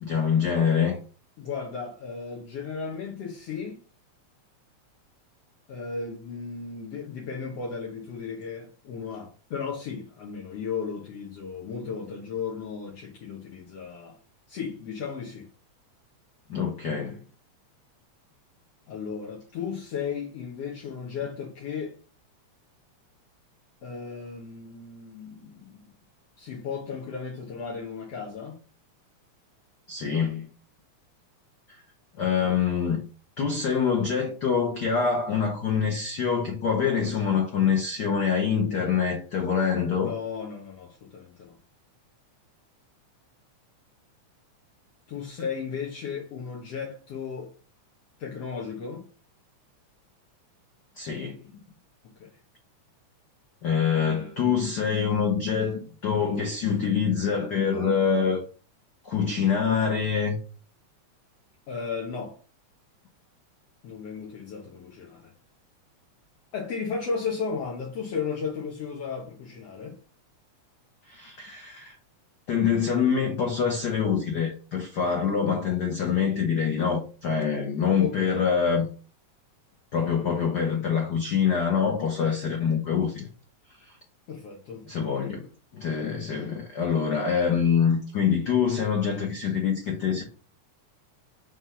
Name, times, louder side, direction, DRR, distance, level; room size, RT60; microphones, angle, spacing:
voice 1, 0.0-1.0 16.5-17.2 29.9-30.5 32.2-33.0 33.4-40.1 51.0-51.4 53.6-58.4 59.0-60.4 71.1-71.9 72.5-78.9 79.9-83.3 84.8-85.4 85.7-90.2, left 6 dB, 80° left, 0.9 m, -25 dB
voice 2, 1.4-3.8 5.7-14.2 14.5-15.5 18.9-22.0 23.8-25.9 26.4-28.6 40.0-41.6 45.1-47.5 48.2-49.1 52.2-52.3 61.7-62.4 63.8-65.3 66.5-70.0 78.0-78.5 84.3-84.8, left 5 dB, 65° left, 2.0 m, -35 dB
5.8 x 3.3 x 5.6 m
omnidirectional pair, 3.3 m